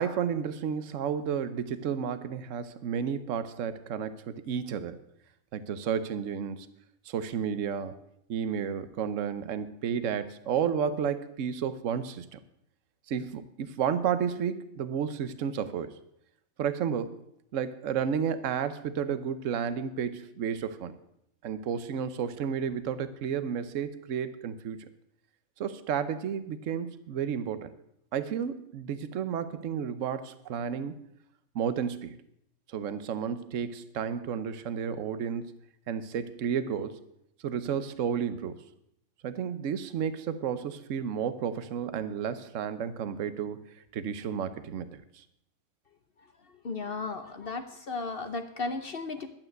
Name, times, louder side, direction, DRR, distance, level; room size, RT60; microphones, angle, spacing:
voice 1, 0.0-5.0 5.5-6.7 7.1-7.9 8.3-12.4 13.1-16.0 16.6-17.2 17.5-21.0 21.4-24.9 25.6-27.7 28.1-31.0 31.5-32.2 32.7-35.5 35.9-37.0 37.4-38.6 39.2-45.0, right 7 dB, 65° right, 13 dB, 1.2 m, -32 dB
voice 2, 46.4-49.3, left 3 dB, 50° left, 8 dB, 0.9 m, -35 dB
12.0 x 8.9 x 7.8 m, 0.74 s
omnidirectional pair, 1.5 m